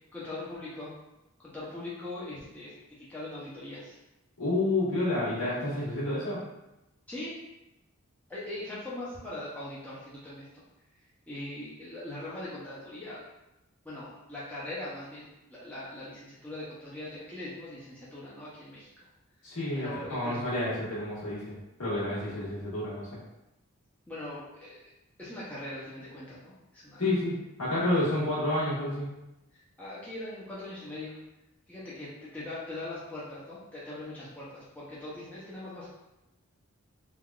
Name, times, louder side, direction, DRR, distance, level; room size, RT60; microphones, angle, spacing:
voice 1, 0.1-0.9 1.4-4.0 7.1-7.3 8.3-10.5 11.3-13.2 13.8-18.9 19.8-20.4 24.1-24.9 25.2-27.1 29.5-31.2 31.7-35.9, left 1 dB, 5° left, -9 dB, 0.5 m, -41 dB
voice 2, 4.4-6.4 19.4-23.1 27.0-29.1, left 1 dB, 70° left, -9 dB, 1.5 m, -30 dB
3.4 x 2.3 x 2.3 m, 0.94 s
head